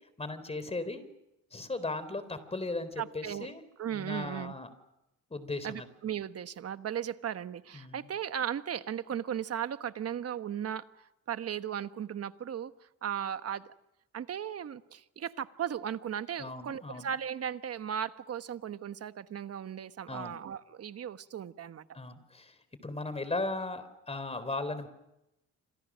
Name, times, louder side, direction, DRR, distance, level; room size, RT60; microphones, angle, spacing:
voice 1, 0.2-1.0 1.5-3.6 3.9-4.7 5.3-5.9 7.7-8.0 16.4-17.1 20.1-20.4 21.9-22.6 22.8-24.9, left 2 dB, 20° left, 13 dB, 3.9 m, -37 dB
voice 2, 3.0-3.5 3.8-4.5 5.6-12.7 13.0-13.7 14.1-21.9, right 9 dB, 55° right, 11 dB, 1.2 m, -36 dB
27.5 x 26.0 x 6.3 m, 0.90 s
cardioid pair, 90°, 30 cm